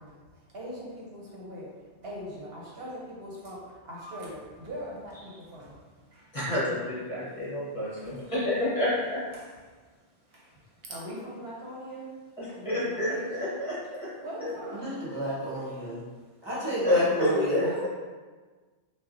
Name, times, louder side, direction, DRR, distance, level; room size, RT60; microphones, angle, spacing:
voice 1, 0.0-6.4 8.0-8.2 9.3-13.6 14.2-15.0 17.2-17.9, equal, 65° right, -4 dB, 1.0 m, -41 dB
voice 2, 6.3-9.2 12.4-14.2 16.8-17.9, left 1 dB, 30° left, -9 dB, 1.2 m, -29 dB
voice 3, 14.7-16.0 16.4-17.6, right 1 dB, 25° right, -8 dB, 1.0 m, -31 dB
5.6 x 2.3 x 2.6 m, 1.4 s
omnidirectional pair, 1.2 m